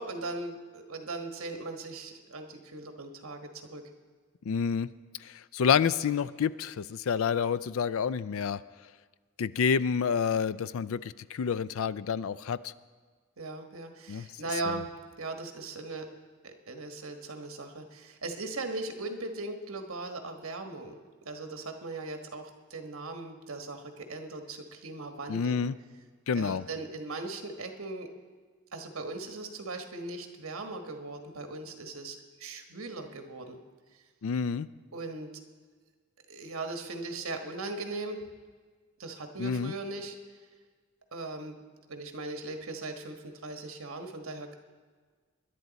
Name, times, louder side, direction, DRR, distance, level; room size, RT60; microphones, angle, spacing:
voice 1, 0.0-3.8 13.4-16.1 16.4-25.6 26.3-28.1 28.7-33.6 34.9-35.3 36.3-38.2 39.0-40.2 41.1-41.6 41.9-44.5, right 2 dB, 70° right, 5 dB, 1.3 m, -39 dB
voice 2, 4.5-4.9 5.2-8.6 9.4-12.7 14.1-14.3 14.6-14.8 25.3-25.7 26.3-26.7 34.2-34.7 39.4-39.7, left 6 dB, 70° left, 17 dB, 0.4 m, -28 dB
21.0 x 11.0 x 4.1 m, 1.5 s
head